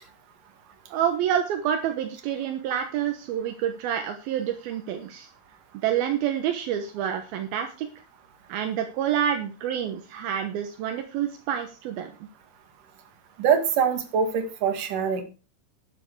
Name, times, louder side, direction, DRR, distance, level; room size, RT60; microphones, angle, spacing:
voice 1, 0.9-5.3 5.8-7.9 8.5-12.1, right 9 dB, 80° right, 6 dB, 2.9 m, -28 dB
voice 2, 13.4-15.2, right 7 dB, 60° right, 7 dB, 3.3 m, -23 dB
12.0 x 9.8 x 4.8 m, 0.34 s
omnidirectional pair, 4.5 m